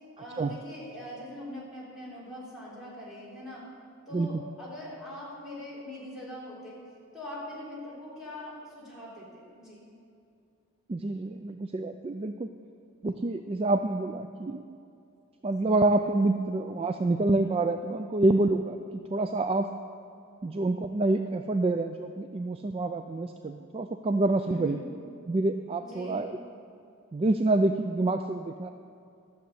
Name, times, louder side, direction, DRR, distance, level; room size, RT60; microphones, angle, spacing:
voice 1, 0.2-3.7 4.1-6.8 7.1-9.8 24.5-24.8 25.8-26.3, left 1 dB, ahead, -8 dB, 3.7 m, -42 dB
voice 2, 10.9-12.5 13.0-14.6 15.4-18.8 19.1-19.7 20.4-24.8 25.3-26.4 27.1-28.7, right 2 dB, 25° right, 7 dB, 0.3 m, -27 dB
13.0 x 7.1 x 7.9 m, 2.6 s
head